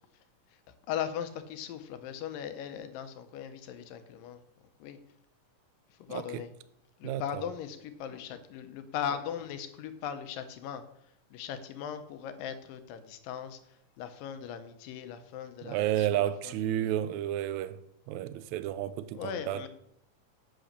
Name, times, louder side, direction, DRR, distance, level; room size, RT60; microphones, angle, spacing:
voice 1, 0.9-4.4 4.8-5.0 6.0-6.5 7.0-10.8 11.3-13.6 14.0-17.0 19.1-19.7, left 9 dB, 80° left, 2.6 m, -39 dB
voice 2, 6.1-6.4 7.0-7.2 15.6-17.8 18.1-19.6, right 12 dB, 80° right, 1.6 m, -31 dB
8.4 x 7.8 x 6.7 m
omnidirectional pair, 3.9 m